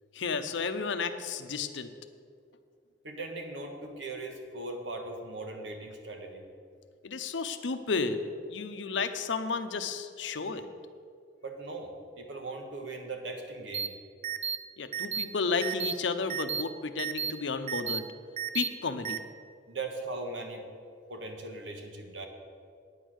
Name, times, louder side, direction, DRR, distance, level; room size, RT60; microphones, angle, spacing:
voice 1, 0.1-1.9 7.0-8.2 8.5-10.7 14.8-18.0 18.5-19.2, left 4 dB, 80° left, 9 dB, 0.7 m, -32 dB
voice 2, 3.0-6.5 11.4-13.9 19.7-20.6 21.1-22.3, right 2 dB, 80° right, 3 dB, 1.5 m, -39 dB
sound 1, 13.7-13.9 14.2-14.6 14.9-15.2 15.6-15.9 16.3-16.6 17.0-17.3 17.7-18.0 18.4-18.7 19.0-19.2, right 7 dB, 35° right, 0.5 m, -32 dB
9.6 x 8.3 x 6.3 m, 2.3 s
head